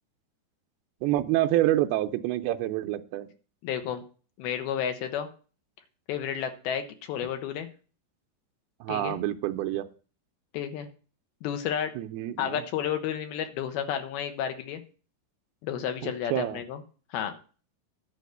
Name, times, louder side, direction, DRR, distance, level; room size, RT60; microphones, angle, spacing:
voice 1, 1.0-3.3 8.8-9.9 12.0-12.6 16.0-16.6, right 14 dB, 80° right, 5 dB, 2.5 m, -27 dB
voice 2, 3.6-4.0 4.4-5.3 6.1-7.7 8.9-9.2 10.5-10.9 11.4-11.9 12.4-14.8 15.6-16.8 17.1-17.3, left 9 dB, 70° left, 8 dB, 2.8 m, -31 dB
10.5 x 5.1 x 8.0 m, 0.38 s
omnidirectional pair, 4.9 m